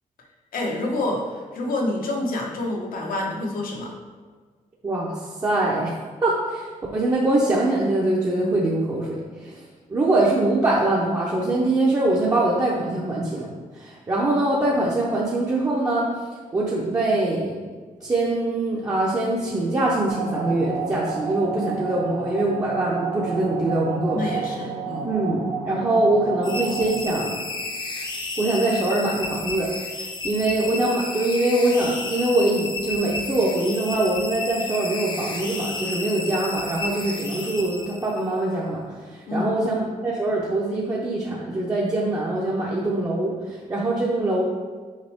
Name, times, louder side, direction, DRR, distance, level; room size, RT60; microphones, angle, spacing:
voice 1, 0.5-4.0 24.1-25.1 39.3-39.8, left 2 dB, 85° left, 0 dB, 1.2 m, -28 dB
voice 2, 4.8-5.9 6.2-6.7 6.9-9.6 9.9-13.5 13.7-16.1 16.5-17.6 18.0-24.2 25.1-27.4 28.4-29.7 30.2-44.4, right 2 dB, 25° right, -5 dB, 0.7 m, -23 dB
sound 1, 20.1-26.9, right 5 dB, 65° right, 0.8 m, -30 dB
sound 2, 26.4-38.3, left 3 dB, 35° left, 0.7 m, -32 dB
6.5 x 5.2 x 3.5 m, 1.5 s
wide cardioid pair, 175°, 14 cm